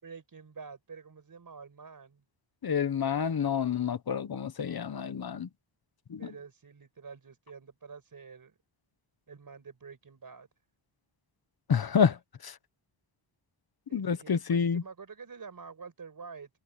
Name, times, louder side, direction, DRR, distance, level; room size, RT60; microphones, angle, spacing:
voice 1, 0.0-2.2 6.2-8.5 9.3-10.5 13.9-16.5, right 5 dB, 45° right, 5.4 m, -48 dB
voice 2, 2.6-5.5 6.1-6.3 11.7-12.6 13.9-14.8, left 7 dB, 50° left, 1.1 m, -28 dB
wide cardioid pair, 175°, 49 cm